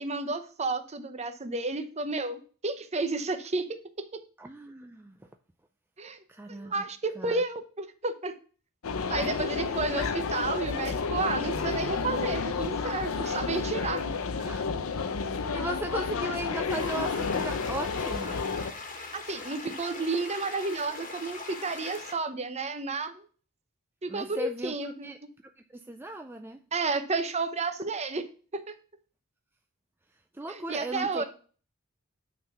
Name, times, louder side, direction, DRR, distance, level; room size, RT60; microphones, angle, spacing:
voice 1, 0.0-3.7 6.0-6.2 6.5-8.3 9.1-14.0 19.0-23.2 24.0-25.1 26.7-28.2 28.7-28.8 30.5-31.2, right 3 dB, 30° right, 9 dB, 0.8 m, -31 dB
voice 2, 4.4-5.2 6.3-6.8 7.2-7.4 14.4-14.6 15.2-18.4 24.1-25.2 25.7-26.6 30.3-31.2, right 1 dB, 10° right, 5 dB, 0.4 m, -37 dB
sound 1, 8.8-18.7, left 5 dB, 85° left, 0.7 m, -31 dB
sound 2, 16.7-22.1, left 3 dB, 40° left, 1.5 m, -41 dB
9.3 x 3.9 x 5.7 m, 0.41 s
head